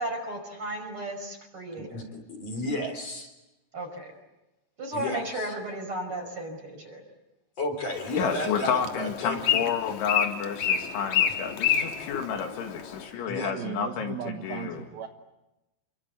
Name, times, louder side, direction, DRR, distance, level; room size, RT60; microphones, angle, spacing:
voice 1, 0.0-2.0 3.7-4.1 4.8-7.0, right 1 dB, 25° right, 4 dB, 6.1 m, -34 dB
voice 2, 1.7-2.0 2.3-3.3 4.9-5.5 7.6-9.6 13.3-13.5, left 1 dB, 35° left, 5 dB, 4.1 m, -32 dB
Bird, 7.9-13.0, left 9 dB, 60° left, 2.1 m, -29 dB
voice 3, 8.2-14.8, left 7 dB, 75° left, 4 dB, 4.5 m, -30 dB
voice 4, 13.5-15.1, right 9 dB, 70° right, 5 dB, 2.5 m, -37 dB
29.0 x 24.5 x 8.3 m, 0.98 s
omnidirectional pair, 5.5 m